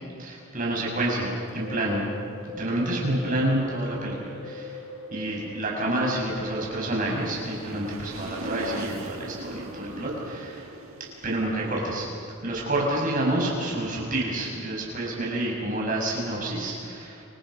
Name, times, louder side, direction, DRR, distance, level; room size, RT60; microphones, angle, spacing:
voice 1, 0.2-2.0 2.5-4.8 5.1-10.7 11.2-12.1 12.4-17.2, right 1 dB, 35° right, -3 dB, 6.7 m, -28 dB
Bird, 1.4-9.7, left 1 dB, 65° left, 4.4 m, -41 dB
sound 1, 6.2-12.9, right 2 dB, 70° right, 1.9 m, -40 dB
29.0 x 27.0 x 5.8 m, 2.4 s
head